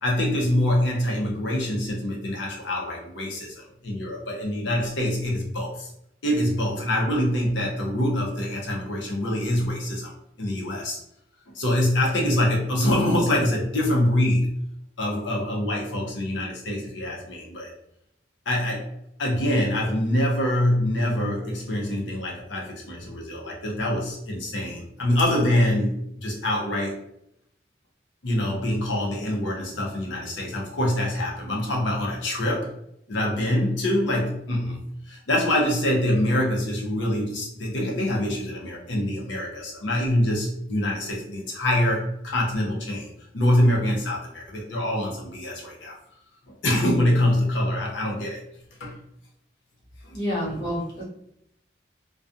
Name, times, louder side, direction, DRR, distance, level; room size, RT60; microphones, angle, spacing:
voice 1, 0.0-5.9 6.2-10.1 10.4-11.0 11.5-14.5 15.0-17.7 18.5-18.9 19.2-27.0 28.2-32.7 33.1-45.9 46.5-48.4 48.8-49.0 50.0-50.2 50.5-50.7, left 1 dB, 90° left, -2 dB, 0.7 m, -25 dB
voice 2, 50.1-51.0, equal, 60° left, -7 dB, 1.0 m, -28 dB
2.3 x 2.3 x 2.5 m, 0.78 s
head